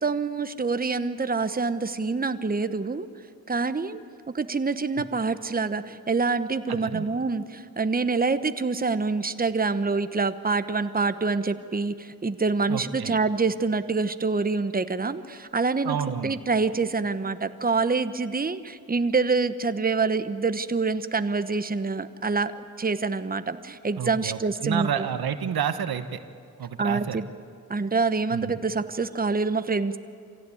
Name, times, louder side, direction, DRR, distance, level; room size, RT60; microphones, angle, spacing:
voice 1, 0.0-3.1 3.5-4.0 4.3-16.0 16.2-22.5 22.8-25.1 26.8-27.3 27.7-30.0, right 4 dB, 25° right, 11 dB, 1.0 m, -26 dB
voice 2, 6.7-7.1 12.7-13.2 15.8-16.3 24.0-26.2 26.6-27.2 28.3-28.6, right 8 dB, 75° right, 10 dB, 1.1 m, -30 dB
25.0 x 16.5 x 8.5 m, 2.3 s
supercardioid pair, 40°, 37 cm